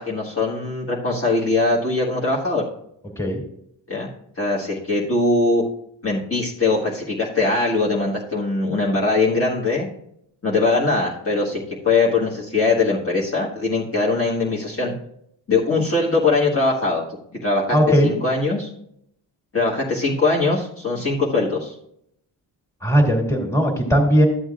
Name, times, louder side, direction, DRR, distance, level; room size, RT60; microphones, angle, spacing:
voice 1, 0.0-2.6 3.9-4.1 4.4-5.6 6.0-9.9 10.4-14.9 15.5-17.0 17.3-17.8 18.0-18.7 19.5-21.7, left 3 dB, 30° left, -5 dB, 1.6 m, -21 dB
voice 2, 17.7-18.1 22.8-24.3, equal, 5° left, 0 dB, 2.3 m, -18 dB
12.5 x 7.7 x 2.5 m, 0.73 s
cardioid pair, 95°, 43 cm